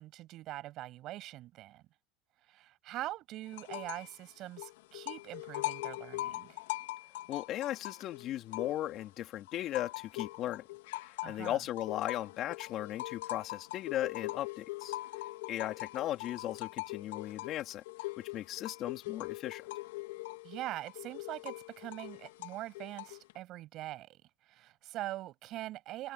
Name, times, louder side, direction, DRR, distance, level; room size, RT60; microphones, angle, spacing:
voice 1, 0.0-1.8 2.5-6.6 11.2-11.6 20.4-24.1 24.5-26.1, right 15 dB, 40° right, 7.4 m, -43 dB
sound 1, 3.5-4.1 4.4-9.1 9.5-23.3, left 18 dB, 75° left, 2.7 m, -42 dB
voice 2, 7.3-10.6 11.0-15.0 15.5-17.8 18.2-19.7, left 13 dB, 40° left, 3.3 m, -37 dB
supercardioid pair, 135°, 0 cm